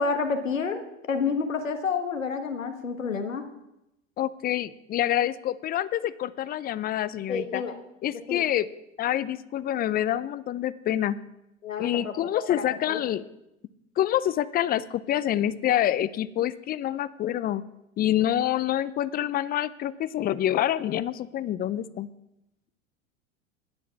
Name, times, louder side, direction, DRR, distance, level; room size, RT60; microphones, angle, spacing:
voice 1, 0.0-3.4 7.3-7.7 8.3-8.4 11.6-13.0, left 5 dB, 90° left, 7 dB, 1.4 m, -29 dB
voice 2, 4.2-7.6 8.0-8.7 9.0-11.2 11.8-13.2 14.0-17.6 18.0-22.1, left 12 dB, 25° left, 17 dB, 0.5 m, -27 dB
10.5 x 9.2 x 5.8 m, 0.89 s
hypercardioid pair, 85°, 38 cm